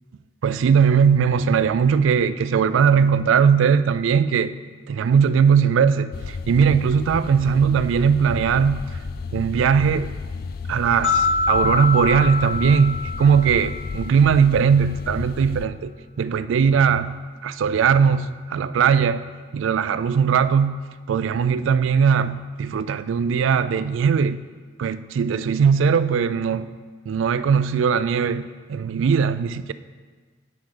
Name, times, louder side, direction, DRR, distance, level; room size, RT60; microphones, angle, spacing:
voice 1, 0.4-4.5 4.9-8.8 9.3-10.1 10.7-19.3 19.5-20.8 21.1-24.4 24.8-26.7 27.1-29.7, right 6 dB, 80° right, 14 dB, 0.3 m, -19 dB
sound 1, 6.1-15.7, left 4 dB, 50° left, 0.3 m, -33 dB
sound 2, 11.0-14.2, left 4 dB, 70° left, 1.8 m, -25 dB
8.9 x 5.7 x 3.9 m, 1.5 s
head